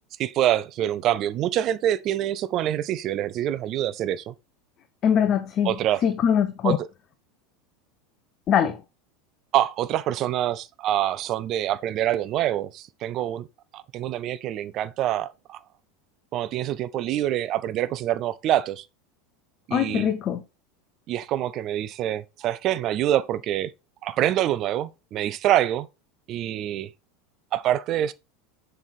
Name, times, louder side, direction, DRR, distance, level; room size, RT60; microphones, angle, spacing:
voice 1, 0.2-4.3 5.7-6.0 6.6-6.8 9.5-13.5 13.7-15.6 16.3-18.8 19.7-20.1 21.1-23.7 24.0-25.9 26.3-26.9 27.5-28.1, right 12 dB, 45° right, 0.5 m, -25 dB
voice 2, 5.0-5.7 6.0-6.8 8.5-8.8 19.7-20.4, left 8 dB, 40° left, 0.6 m, -22 dB
7.0 x 3.4 x 4.2 m
figure-of-eight pair, 80°, 0 cm